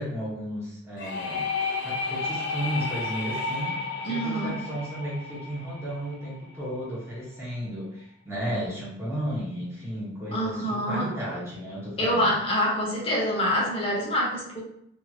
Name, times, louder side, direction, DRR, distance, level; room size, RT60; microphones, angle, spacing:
voice 1, 0.0-1.5 1.8-3.8 4.1-12.3, equal, 15° right, -7 dB, 1.0 m, -33 dB
sound 1, 1.0-6.6, left 4 dB, 60° left, 0.5 m, -32 dB
voice 2, 4.0-4.6 10.3-11.1 12.0-14.6, equal, 30° left, -3 dB, 0.9 m, -26 dB
2.8 x 2.8 x 2.4 m, 0.73 s
head